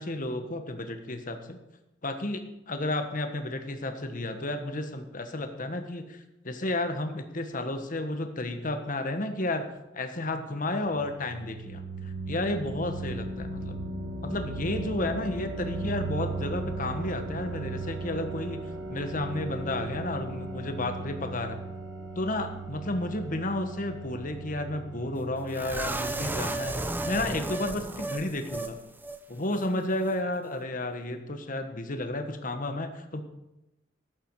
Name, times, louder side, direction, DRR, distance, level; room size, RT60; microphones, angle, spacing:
voice 1, 0.0-1.6 2.0-9.6 9.9-11.8 12.3-13.8 14.2-18.6 18.9-21.6 22.1-26.8 27.0-28.8 29.3-33.2, left 2 dB, 45° left, 7 dB, 1.4 m, -32 dB
sound 1, 10.6-27.3, right 2 dB, 85° right, 1.4 m, -37 dB
sound 2, 25.5-28.7 29.0-29.2 29.5-29.7, right 2 dB, 10° right, 0.7 m, -33 dB
14.0 x 11.5 x 4.8 m, 0.93 s
head